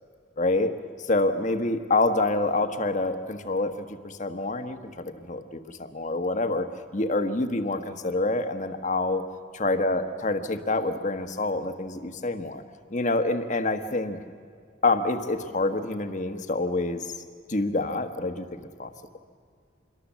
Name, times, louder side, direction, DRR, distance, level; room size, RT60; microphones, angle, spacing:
voice 1, 0.4-0.7 1.0-6.7 6.9-9.2 9.5-12.6 12.9-14.2 14.8-17.1 17.5-19.2, left 2 dB, 40° left, 7 dB, 1.3 m, -27 dB
27.0 x 22.5 x 7.4 m, 2.1 s
head